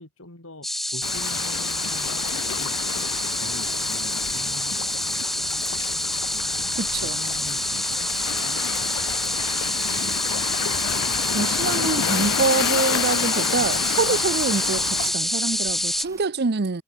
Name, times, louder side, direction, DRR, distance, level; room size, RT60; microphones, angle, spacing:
voice 1, 0.0-5.3 6.3-8.0 8.2-9.2 9.9-10.5 11.1-12.6 12.9-13.3, left 1 dB, 65° left, 3.9 m, -43 dB
sound 1, 0.6-16.0, left 1 dB, ahead, 0.5 m, -26 dB
Waves surf, 1.0-15.2, left 11 dB, 90° left, 0.3 m, -30 dB
Rain, 6.1-16.2, right 2 dB, 15° right, 3.2 m, -50 dB
voice 2, 6.7-7.2 11.3-16.8, right 4 dB, 50° right, 0.8 m, -25 dB
head